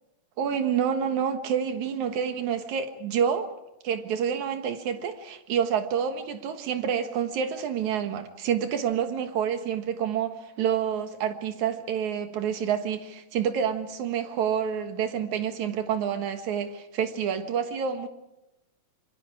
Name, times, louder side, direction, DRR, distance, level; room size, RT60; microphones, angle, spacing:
voice 1, 0.4-3.5 3.8-18.1, right 8 dB, 85° right, 2.9 m, -28 dB
26.0 x 24.0 x 4.8 m
omnidirectional pair, 3.3 m